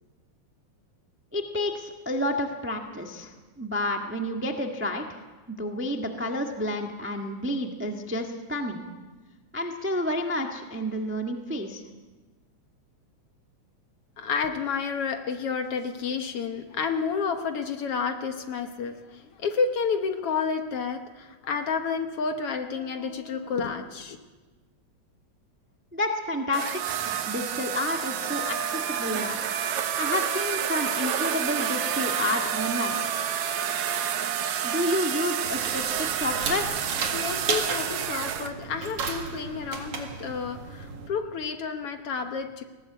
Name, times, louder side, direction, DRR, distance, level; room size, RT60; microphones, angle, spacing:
voice 1, 1.3-5.0 5.5-8.8 9.5-11.8 25.9-28.6 28.9-29.4 30.0-33.0 34.6-36.8, left 1 dB, 10° right, 3 dB, 0.8 m, -30 dB
voice 2, 14.2-24.2 37.1-42.6, left 5 dB, 60° left, 6 dB, 1.8 m, -30 dB
sound 1, 26.5-38.5, right 9 dB, 75° right, 2.4 m, -29 dB
sound 2, 35.4-41.1, right 5 dB, 55° right, 2.9 m, -34 dB
19.5 x 17.5 x 8.0 m, 1.2 s
omnidirectional pair, 3.3 m